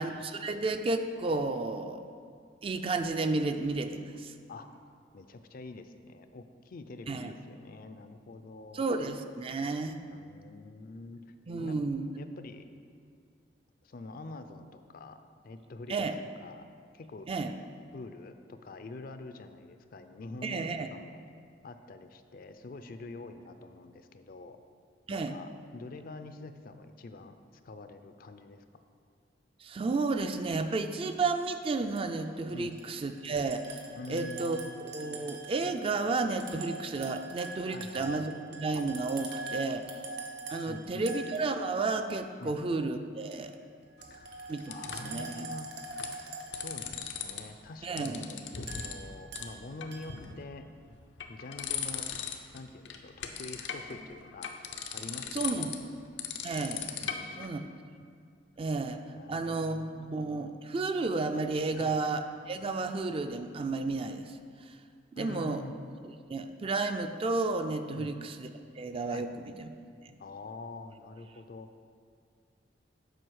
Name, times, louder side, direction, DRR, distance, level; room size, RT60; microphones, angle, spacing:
voice 1, 0.0-2.1 2.6-4.3 7.1-7.3 8.7-10.0 11.5-12.1 15.9-16.1 17.3-17.5 20.4-20.9 25.1-25.4 29.6-33.8 34.1-34.6 34.9-39.9 40.5-43.6 44.5-45.5 47.8-48.2 55.3-55.7 56.4-56.9 57.4-57.6 58.6-59.0 59.3-64.4 64.7-64.8 65.1-65.6 66.3-68.5 68.8-69.7, right 3 dB, 30° right, 7 dB, 0.4 m, -32 dB
voice 2, 5.1-8.9 10.1-11.2 11.6-11.8 12.2-12.6 13.8-15.2 15.4-15.9 16.4-16.7 16.9-17.3 17.9-21.2 21.6-24.6 25.1-27.4 27.6-28.6 32.5-32.8 33.9-34.7 37.7-38.3 40.6-41.1 42.4-42.6 44.1-44.3 44.7-45.7 46.5-51.0 51.3-52.1 52.5-55.9 57.0-57.8 59.1-60.2 61.7-62.0 65.2-65.7 67.9-68.1 69.1-69.3 70.2-71.7, left 3 dB, 55° left, 9 dB, 0.5 m, -46 dB
sound 1, 31.9-32.0 32.5-41.9 43.3-43.4 43.8-47.1 48.7-49.6 49.9-50.2, right 3 dB, 65° right, 1.2 m, -43 dB
sound 2, 44.0-45.2 45.8-46.1 46.4-47.4 47.7-49.0 49.3-49.4 49.8-50.4 50.9-52.6 52.8-57.5, left 8 dB, 85° left, 0.7 m, -38 dB
7.7 x 5.1 x 6.3 m, 2.2 s
head